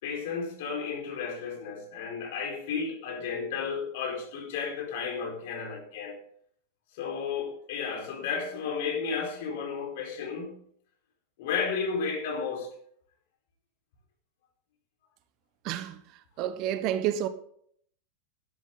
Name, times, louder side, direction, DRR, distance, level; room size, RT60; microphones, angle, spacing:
voice 1, 0.0-6.2 6.9-10.6 11.4-12.7, left 5 dB, 50° left, 4.9 m, -33 dB
voice 2, 16.4-17.3, right 11 dB, 40° right, 1.0 m, -29 dB
12.5 x 12.0 x 4.0 m
figure-of-eight pair, 90°, 0 cm